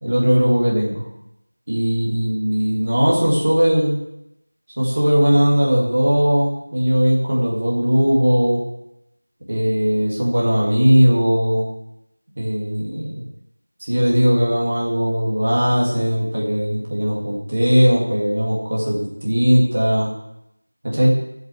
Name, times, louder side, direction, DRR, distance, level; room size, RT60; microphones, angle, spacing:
voice 1, 0.0-1.0 1.7-4.0 4.8-8.6 9.5-11.6 12.4-13.2 13.8-20.1 20.8-21.1, equal, 15° right, -3 dB, 2.0 m, -18 dB
11.5 x 8.1 x 7.0 m, 0.82 s
figure-of-eight pair, 175°, 0 cm